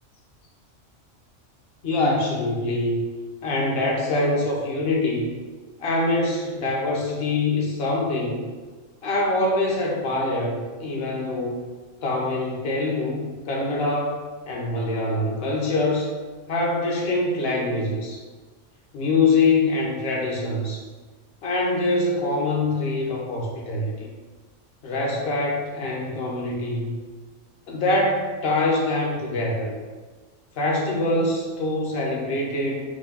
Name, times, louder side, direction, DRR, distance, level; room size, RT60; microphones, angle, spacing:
voice 1, 1.8-3.1 3.4-5.3 5.8-8.5 9.0-11.6 12.0-16.1 16.5-18.2 18.9-20.8 21.4-24.1 24.8-27.0 27.7-29.7 30.6-32.8, left 2 dB, 60° left, -2 dB, 0.9 m, -24 dB
4.4 x 2.3 x 2.7 m, 1.4 s
omnidirectional pair, 1.3 m